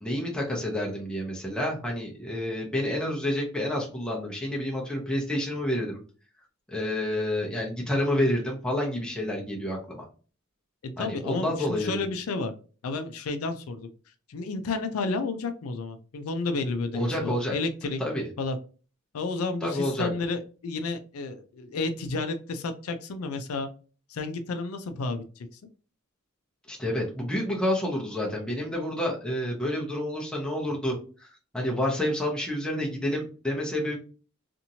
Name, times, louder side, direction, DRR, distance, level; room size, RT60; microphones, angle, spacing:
voice 1, 0.0-6.0 6.7-10.0 11.0-12.0 16.9-17.5 18.0-18.2 19.6-20.1 26.7-30.9 31.2-34.0, left 1 dB, 5° left, -2 dB, 0.6 m, -29 dB
voice 2, 10.8-12.5 12.8-13.9 14.3-18.0 18.4-18.6 19.1-23.7 24.1-25.5, left 3 dB, 90° left, 8 dB, 0.4 m, -31 dB
2.8 x 2.5 x 2.7 m, 0.37 s
head